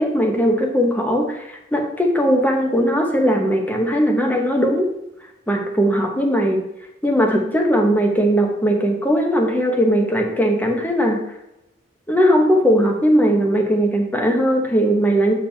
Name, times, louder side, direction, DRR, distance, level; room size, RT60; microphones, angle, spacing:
voice 1, 0.0-4.9 5.5-6.6 7.0-11.2 12.1-15.3, equal, 10° left, 2 dB, 1.0 m, -18 dB
8.5 x 5.2 x 2.8 m, 0.91 s
head